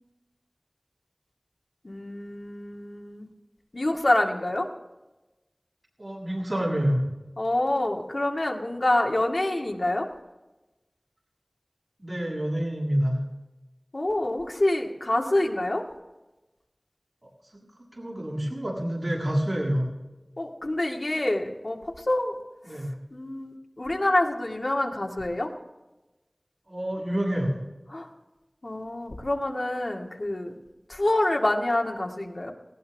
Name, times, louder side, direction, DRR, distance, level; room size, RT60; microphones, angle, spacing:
voice 1, 1.8-3.3 3.7-4.7 7.4-10.1 13.9-15.9 20.4-22.4 23.1-25.5 27.9-28.1 28.6-30.6 30.9-32.5, left 1 dB, 70° left, 1 dB, 2.0 m, -26 dB
voice 2, 6.0-7.1 12.0-13.2 18.0-19.9 22.6-22.9 26.7-27.5, equal, 60° right, -4 dB, 7.5 m, -27 dB
18.5 x 18.0 x 3.5 m, 1.0 s
wide cardioid pair, 45°, 0 cm